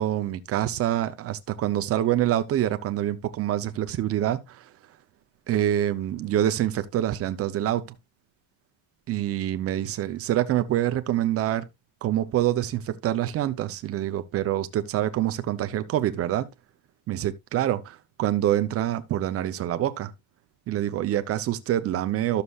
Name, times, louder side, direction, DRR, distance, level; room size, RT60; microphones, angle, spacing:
voice 1, 0.0-4.6 5.5-8.0 9.1-11.7 12.0-16.5 17.1-20.1 20.7-22.4, right 12 dB, 30° right, 0.6 m, -26 dB
13.0 x 6.7 x 2.3 m
cardioid pair, 170°, 49 cm